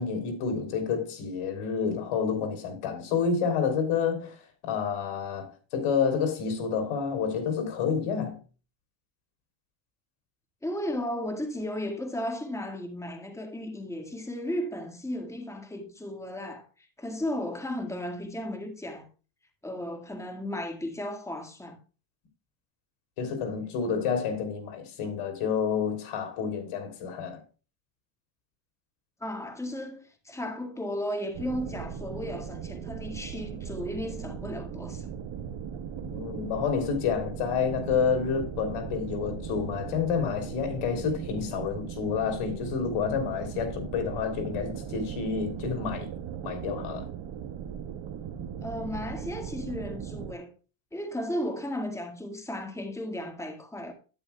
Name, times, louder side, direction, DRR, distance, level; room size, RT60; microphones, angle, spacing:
voice 1, 0.0-4.4 4.6-8.4 23.2-27.4 36.1-46.1 46.4-47.1, left 6 dB, 80° left, 3.3 m, -29 dB
voice 2, 10.6-19.1 19.6-21.8 29.2-35.1 48.6-50.5 50.9-53.9, left 1 dB, 5° left, 1.8 m, -35 dB
sound 1, 31.3-50.3, right 8 dB, 70° right, 1.4 m, -38 dB
12.0 x 9.4 x 2.3 m
cardioid pair, 110°, 50 cm